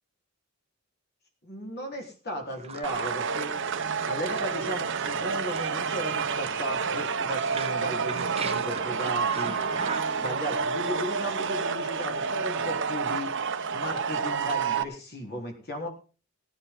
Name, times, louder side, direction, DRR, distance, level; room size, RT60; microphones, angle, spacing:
voice 1, 1.4-3.5 4.0-9.6 10.2-13.3 13.7-15.9, equal, 45° left, 2 dB, 4.0 m, -36 dB
sound 1, 2.5-10.3, right 5 dB, 25° right, 0.9 m, -40 dB
sound 2, 2.8-14.8, right 5 dB, 55° right, 1.0 m, -29 dB
18.0 x 10.5 x 3.8 m, 0.35 s
head